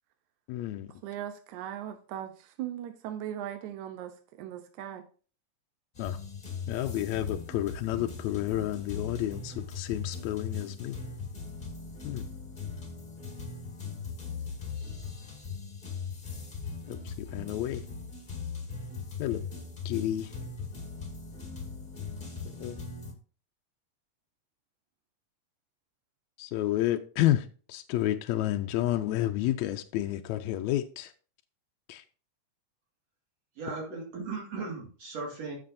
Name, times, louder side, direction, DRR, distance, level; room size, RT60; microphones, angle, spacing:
voice 1, 0.5-0.9 6.0-6.2 6.7-11.0 12.0-12.3 16.9-17.8 19.2-19.4 19.9-20.3 22.6-22.8 26.4-31.1 31.9-32.0, left 13 dB, 80° left, 1.8 m, -30 dB
voice 2, 1.0-5.1, right 11 dB, 85° right, 2.2 m, -39 dB
sound 1, 6.0-23.1, left 5 dB, 20° left, 1.4 m, -39 dB
voice 3, 33.6-35.6, right 4 dB, 65° right, 3.0 m, -37 dB
14.0 x 5.9 x 2.6 m
omnidirectional pair, 3.3 m